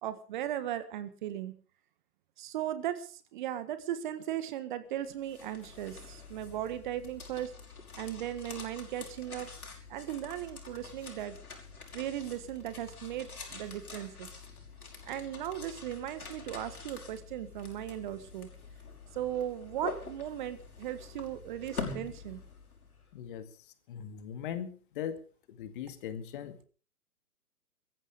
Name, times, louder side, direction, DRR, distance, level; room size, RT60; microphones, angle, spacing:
voice 1, 0.0-1.6 2.4-7.5 8.0-9.5 9.9-11.4 11.9-14.3 15.0-18.5 19.1-22.4, right 11 dB, 30° right, 12 dB, 1.5 m, -37 dB
sound 1, 5.0-23.0, left 4 dB, 70° left, 5.7 m, -46 dB
voice 2, 23.1-23.5 23.9-25.2 25.6-26.6, left 9 dB, 35° left, 10 dB, 2.2 m, -39 dB
23.5 x 14.5 x 3.8 m, 0.39 s
figure-of-eight pair, 130°, 46 cm